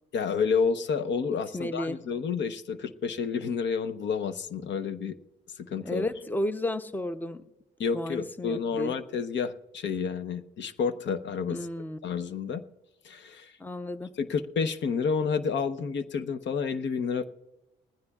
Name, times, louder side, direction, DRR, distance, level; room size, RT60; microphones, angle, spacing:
voice 1, 0.1-5.2 5.6-6.0 7.8-11.7 12.0-12.6 13.0-13.5 14.2-17.2, left 5 dB, 65° left, 12 dB, 0.9 m, -30 dB
voice 2, 1.5-2.0 5.8-7.4 7.9-8.9 11.5-12.0 13.6-14.1, left 1 dB, 10° left, 12 dB, 0.7 m, -32 dB
20.0 x 15.0 x 2.4 m, 0.95 s
cardioid pair, 90°, 20 cm